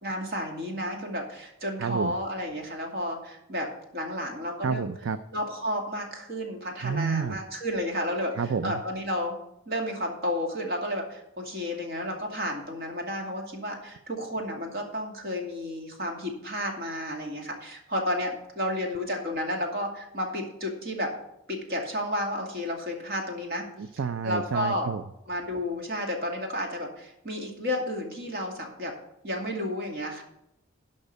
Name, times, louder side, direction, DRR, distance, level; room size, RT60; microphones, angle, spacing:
voice 1, 0.0-3.7 3.9-4.9 5.3-9.4 9.7-21.1 21.5-23.7 24.2-24.9 25.3-28.9 29.2-30.2, left 1 dB, 50° right, 1 dB, 2.4 m, -32 dB
voice 2, 1.8-2.1 4.6-5.2 6.8-7.4 8.4-8.8 23.8-25.0, right 6 dB, 65° right, 11 dB, 0.5 m, -29 dB
12.0 x 5.3 x 6.7 m, 0.80 s
head